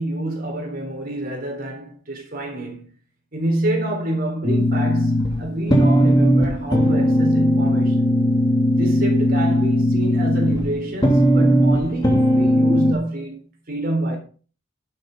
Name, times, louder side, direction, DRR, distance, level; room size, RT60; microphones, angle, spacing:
voice 1, 0.0-2.9 3.3-8.2 8.8-13.4 13.7-14.2, right 1 dB, 45° right, 3.8 m, -27 dB
sound 1, 4.4-12.9, equal, 20° left, 2.7 m, -18 dB
11.5 x 6.7 x 5.2 m
head